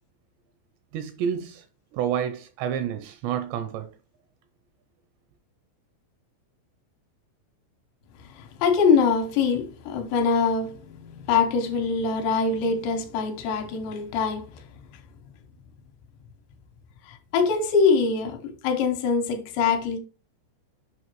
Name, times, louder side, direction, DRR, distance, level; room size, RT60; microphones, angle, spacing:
voice 1, 0.9-1.7 1.9-3.9, right 8 dB, 85° right, 2.5 m, -29 dB
voice 2, 8.4-14.5 17.1-20.0, left 5 dB, 80° left, 3.0 m, -23 dB
7.9 x 5.7 x 3.0 m
omnidirectional pair, 5.4 m